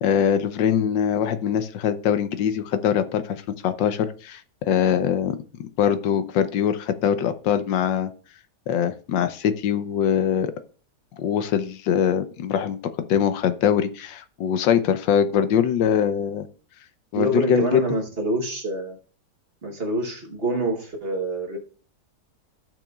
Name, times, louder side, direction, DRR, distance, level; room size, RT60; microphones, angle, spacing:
voice 1, 0.0-4.4 4.7-5.4 5.8-8.1 8.7-10.5 11.2-12.8 13.1-16.5 17.1-17.8, left 8 dB, 90° left, 11 dB, 1.5 m, -22 dB
voice 2, 17.1-19.0 19.6-21.6, right 1 dB, 40° right, 2 dB, 1.2 m, -26 dB
14.5 x 6.1 x 2.4 m, 0.41 s
omnidirectional pair, 1.9 m